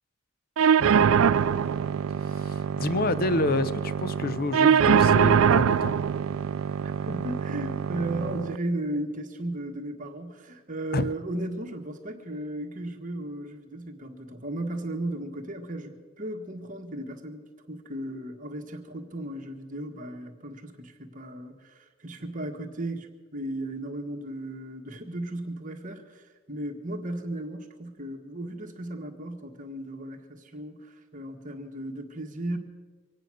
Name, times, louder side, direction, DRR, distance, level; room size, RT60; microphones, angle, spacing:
sound 1, 0.6-8.6, right 7 dB, 80° right, 0.4 m, -23 dB
voice 1, 2.2-5.9 10.9-11.1, left 2 dB, 50° left, 0.6 m, -28 dB
voice 2, 6.8-32.6, right 1 dB, 40° right, 1.6 m, -35 dB
24.0 x 9.2 x 6.2 m
head